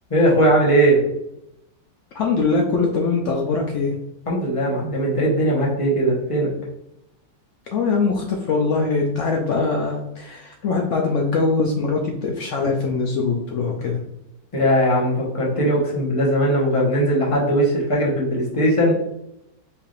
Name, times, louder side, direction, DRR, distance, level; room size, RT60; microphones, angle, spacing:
voice 1, 0.1-1.0 4.3-6.5 14.5-18.9, right 1 dB, 25° left, -3 dB, 0.9 m, -19 dB
voice 2, 2.1-3.9 7.7-14.0, left 4 dB, 80° left, 1 dB, 0.6 m, -22 dB
4.6 x 3.4 x 2.4 m, 0.83 s
omnidirectional pair, 1.9 m